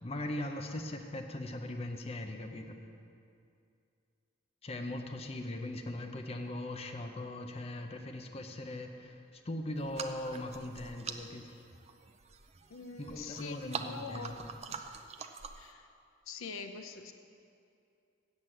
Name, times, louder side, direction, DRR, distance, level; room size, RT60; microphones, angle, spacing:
voice 1, 0.0-2.8 4.6-11.6 13.0-14.3, left 1 dB, 30° left, 4 dB, 0.6 m, -40 dB
sound 1, 9.8-15.7, right 5 dB, 30° right, 0.5 m, -45 dB
voice 2, 12.7-15.0 15.6-15.9 16.3-17.1, left 4 dB, 85° left, 8 dB, 0.7 m, -45 dB
8.1 x 7.3 x 7.6 m, 2.5 s
head